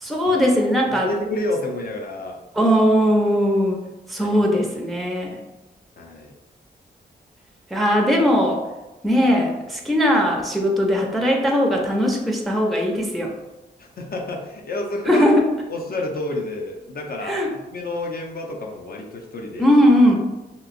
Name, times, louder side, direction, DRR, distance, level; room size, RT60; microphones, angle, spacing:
voice 1, 0.0-1.1 2.5-3.8 4.1-5.3 7.7-8.6 9.0-13.3 15.1-15.5 17.2-17.5 19.6-20.2, equal, ahead, 0 dB, 0.4 m, -19 dB
voice 2, 0.8-2.4 4.2-4.4 6.0-6.3 13.8-15.2 15.7-19.7, left 2 dB, 60° left, 1 dB, 0.6 m, -30 dB
2.9 x 2.7 x 2.5 m, 1.0 s
wide cardioid pair, 95°, 17 cm